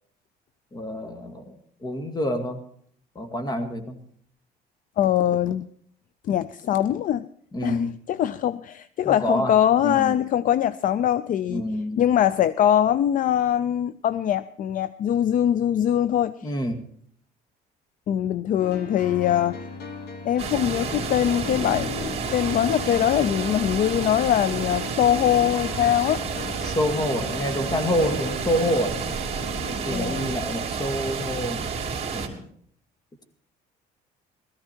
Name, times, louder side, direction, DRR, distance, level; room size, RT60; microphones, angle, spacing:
voice 1, 0.7-1.5 1.8-2.6 3.2-4.0 7.5-7.9 9.0-9.5 9.8-10.2 11.5-12.1 16.4-16.9 21.4-21.9 26.6-29.0 29.7-31.6 32.1-32.4, equal, 25° left, 8 dB, 2.1 m, -27 dB
voice 2, 5.0-5.7 6.3-7.3 7.6-11.7 12.0-16.5 18.1-19.6 20.2-26.2 29.9-30.3, left 10 dB, 50° left, 17 dB, 0.5 m, -22 dB
sound 1, 18.6-29.8, left 4 dB, 75° left, 2.1 m, -38 dB
sound 2, 20.4-32.3, right 5 dB, 35° right, 3.1 m, -30 dB
17.5 x 14.0 x 4.5 m, 0.62 s
cardioid pair, 110°, 17 cm